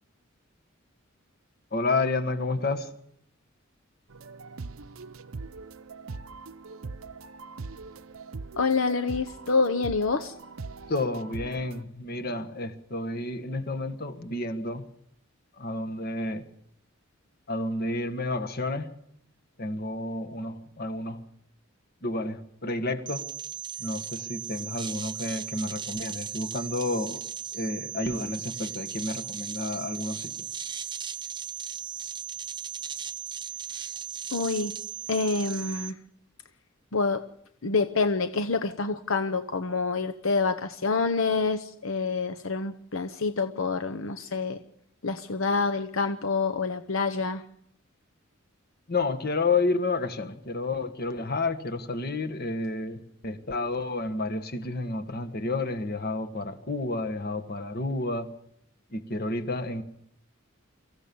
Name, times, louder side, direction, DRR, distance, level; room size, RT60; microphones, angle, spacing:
voice 1, 1.7-2.9 10.9-14.9 15.6-16.5 17.5-18.9 19.6-21.2 22.0-23.2 23.8-27.2 27.5-30.3 48.9-58.3 58.9-59.8, left 2 dB, 50° left, 1.6 m, -30 dB
sound 1, 4.1-11.8, right 4 dB, 85° right, 0.7 m, -41 dB
voice 2, 8.6-10.3 34.3-34.7 35.1-36.0 36.9-37.2 37.6-44.6 45.0-47.4, left 4 dB, 75° left, 0.9 m, -27 dB
sound 2, 23.1-35.9, right 8 dB, 20° right, 1.0 m, -37 dB
24.5 x 15.5 x 7.0 m
head